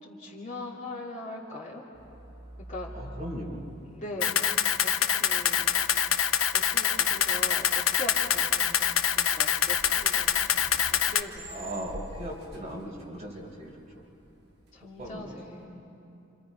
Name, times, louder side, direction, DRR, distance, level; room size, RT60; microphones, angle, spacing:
voice 1, 0.0-1.8 2.7-2.9 3.9-4.4 4.8-5.7 6.5-11.7 14.7-15.8, left 1 dB, 35° left, -3 dB, 2.8 m, -41 dB
sound 1, 1.9-15.6, right 1 dB, 55° right, 5.1 m, -48 dB
voice 2, 2.9-3.7 11.5-14.0 15.0-15.6, equal, 30° right, -3 dB, 4.1 m, -38 dB
Camera, 4.2-11.2, left 9 dB, 70° left, 0.7 m, -25 dB
29.0 x 27.0 x 5.3 m, 2.7 s
head